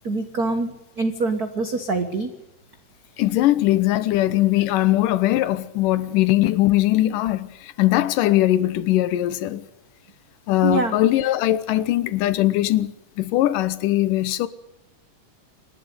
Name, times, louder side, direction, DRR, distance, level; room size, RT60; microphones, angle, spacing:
voice 1, 0.0-0.7 1.0-2.3 10.6-10.9, right 3 dB, 75° right, 0.8 m, -24 dB
voice 2, 3.2-9.7 10.5-14.5, left 15 dB, 80° left, 2.5 m, -20 dB
27.0 x 11.5 x 9.4 m
omnidirectional pair, 3.8 m